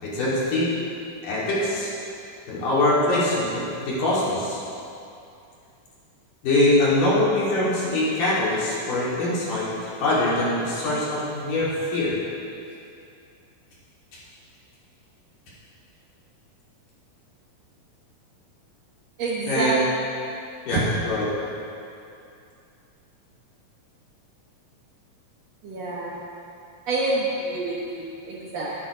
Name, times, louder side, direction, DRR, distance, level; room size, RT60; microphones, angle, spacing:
voice 1, 0.0-0.7 1.2-1.9 2.5-4.6 6.4-12.2 19.5-19.8 20.7-21.3, left 1 dB, 65° left, -8 dB, 4.2 m, -23 dB
voice 2, 19.2-19.8 20.7-20.9 25.6-26.2 26.9-28.7, right 2 dB, 60° right, -5 dB, 1.8 m, -27 dB
10.5 x 10.0 x 5.0 m, 2.6 s
omnidirectional pair, 4.1 m